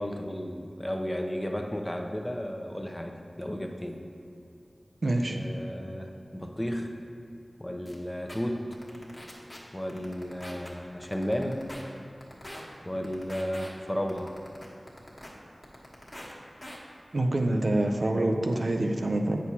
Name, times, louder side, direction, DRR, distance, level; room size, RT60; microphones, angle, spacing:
voice 1, 0.0-4.0 5.3-6.9 7.6-8.7 9.7-11.6 12.9-14.3, equal, 15° left, 3 dB, 0.6 m, -33 dB
voice 2, 5.0-5.4 17.1-19.4, right 1 dB, 70° right, 3 dB, 0.5 m, -26 dB
sound 1, 7.9-8.0 8.3-8.4 8.7-9.6 9.9-10.7 11.0-11.8 12.2-12.6 13.0-13.7 14.1-15.3 15.6-16.3 16.6-16.8, left 1 dB, 35° left, 1.3 m, -43 dB
7.9 x 6.2 x 2.8 m, 2.6 s
wide cardioid pair, 50°, 0 cm